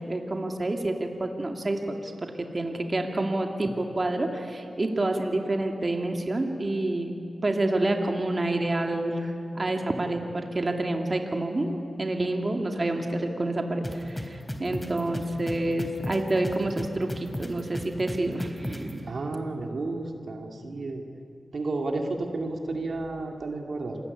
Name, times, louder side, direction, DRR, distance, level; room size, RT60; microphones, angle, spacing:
voice 1, 0.0-2.1 2.5-7.1 7.4-19.1, right 2 dB, 35° right, 3 dB, 2.5 m, -28 dB
sound 1, 13.8-18.9, left 1 dB, 10° left, 3.7 m, -34 dB
voice 2, 19.0-21.0 21.5-24.0, right 2 dB, 70° right, 2 dB, 2.5 m, -32 dB
28.0 x 21.0 x 9.9 m, 2.7 s
wide cardioid pair, 75°, 0 cm